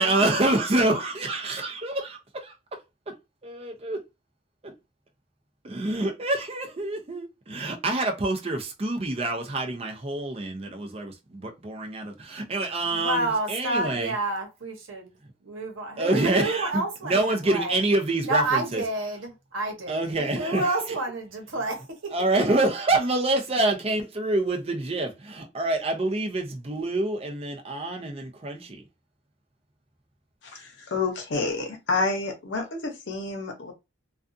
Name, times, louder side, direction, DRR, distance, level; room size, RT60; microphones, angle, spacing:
voice 1, 0.0-2.5 3.1-3.2 3.4-4.0 4.6-4.7 5.6-14.1 16.0-18.8 19.9-20.8 22.1-28.8, right 2 dB, 30° right, 0.5 m, -27 dB
voice 2, 12.9-15.1 15.4-17.8 18.2-22.1, right 2 dB, 85° right, 1.0 m, -29 dB
voice 3, 30.4-33.7, left 3 dB, 65° left, 0.8 m, -29 dB
2.5 x 2.4 x 2.5 m
head